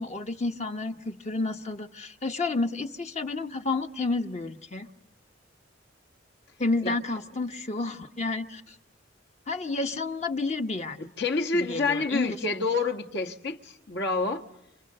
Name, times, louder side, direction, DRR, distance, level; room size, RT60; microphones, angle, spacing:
voice 1, 0.0-4.9 6.6-8.8 9.5-11.0 11.5-12.4, left 3 dB, 35° left, 1.1 m, -30 dB
voice 2, 11.0-14.4, left 3 dB, 60° left, 1.6 m, -28 dB
29.5 x 28.5 x 6.7 m
head